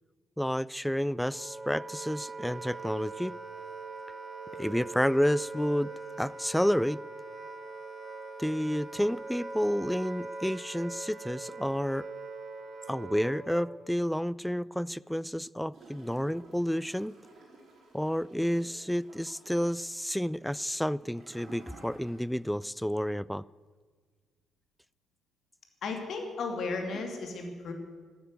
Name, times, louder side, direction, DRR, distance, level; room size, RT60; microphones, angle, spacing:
voice 1, 0.4-3.4 4.5-7.0 8.4-12.1 12.9-17.1 17.9-23.4, equal, 5° left, 22 dB, 0.4 m, -30 dB
Wind instrument woodwind instrument, 1.1-13.8, right 3 dB, 30° right, 2.3 m, -42 dB
Gurgling / Toilet flush, 15.7-22.6 22.9-23.0, right 2 dB, 55° right, 4.7 m, -54 dB
voice 2, 25.8-27.7, left 3 dB, 55° left, 4 dB, 2.7 m, -34 dB
13.0 x 12.5 x 8.1 m, 1.5 s
figure-of-eight pair, 40°, 0 cm